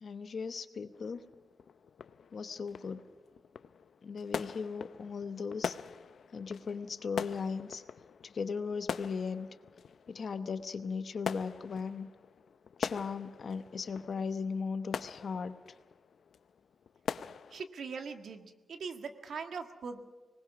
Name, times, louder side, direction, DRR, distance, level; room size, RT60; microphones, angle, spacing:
voice 1, 0.0-1.2 2.3-3.0 4.0-5.8 6.3-7.8 8.2-9.5 10.1-12.1 12.8-15.5, left 5 dB, 55° left, 11 dB, 0.9 m, -37 dB
sound 1, 0.9-17.6, left 6 dB, 75° left, 0.5 m, -43 dB
voice 2, 17.5-20.1, right 5 dB, 85° right, 7 dB, 1.6 m, -41 dB
25.0 x 19.5 x 6.0 m, 1.4 s
wide cardioid pair, 170°, 0 cm